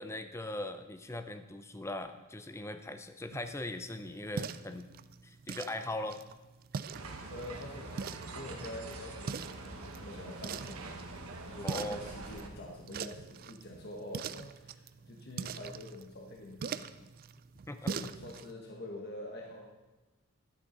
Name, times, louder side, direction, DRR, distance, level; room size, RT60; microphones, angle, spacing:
voice 1, 0.0-4.9 5.2-6.2 11.6-12.0 17.7-17.9, left 1 dB, 10° left, 9 dB, 0.5 m, -40 dB
sound 1, 3.3-18.5, right 6 dB, 40° right, 0.3 m, -43 dB
sound 2, 6.9-12.5, right 2 dB, 75° right, 1.2 m, -45 dB
voice 2, 7.3-10.9 11.5-17.1 17.9-19.7, left 1 dB, 45° left, 0 dB, 1.1 m, -46 dB
11.5 x 10.0 x 3.9 m, 1.1 s
head